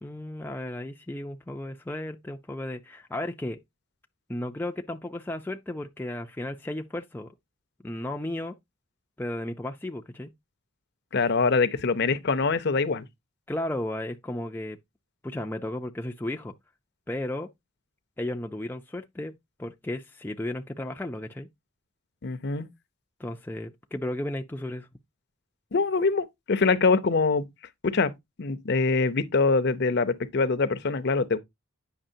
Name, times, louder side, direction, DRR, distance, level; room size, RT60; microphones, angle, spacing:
voice 1, 0.0-3.6 4.3-7.3 7.8-8.6 9.2-10.3 13.5-14.8 15.2-16.5 17.1-17.5 18.2-19.3 19.6-21.5 23.2-24.9, left 1 dB, 10° left, 0.4 m, -34 dB
voice 2, 11.1-13.0 22.2-22.7 25.7-27.5 27.8-28.1 28.4-31.4, left 4 dB, 50° left, 0.6 m, -24 dB
8.8 x 5.8 x 2.7 m
head